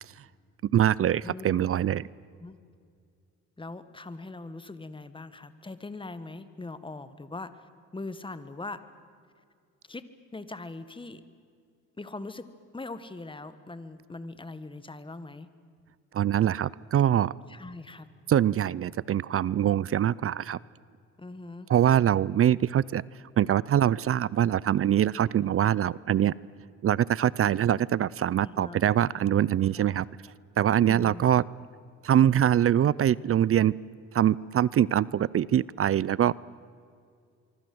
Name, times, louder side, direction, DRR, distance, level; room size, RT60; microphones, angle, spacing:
voice 1, 0.7-2.1 16.1-17.3 18.3-20.6 21.7-23.0 23.4-26.3 26.8-30.1 30.6-31.4 32.0-33.8 34.1-36.4, right 10 dB, 50° right, 22 dB, 0.6 m, -23 dB
voice 2, 1.2-1.9 2.4-2.6 3.6-8.8 9.9-10.0 10.3-11.2 12.0-12.5 12.7-15.5 17.5-18.1 21.2-21.7 28.4-29.3 29.8-29.9 30.8-31.3 36.2-36.3, left 3 dB, 15° left, 12 dB, 1.7 m, -41 dB
24.5 x 24.5 x 7.9 m, 2.2 s
cardioid pair, 90°, 30 cm